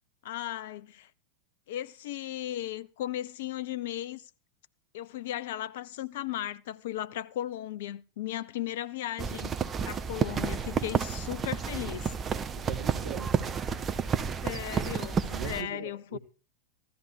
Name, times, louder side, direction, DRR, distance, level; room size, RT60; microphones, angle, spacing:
voice 1, 0.2-1.1 1.7-4.3 4.9-9.6 9.8-12.1 14.4-16.2, left 12 dB, 55° left, 0.6 m, -36 dB
sound 1, 9.2-15.6, right 6 dB, 25° right, 1.1 m, -31 dB
voice 2, 12.5-13.4 15.3-16.2, right 8 dB, 60° right, 1.6 m, -40 dB
15.0 x 13.0 x 4.5 m
figure-of-eight pair, 90°, 0 cm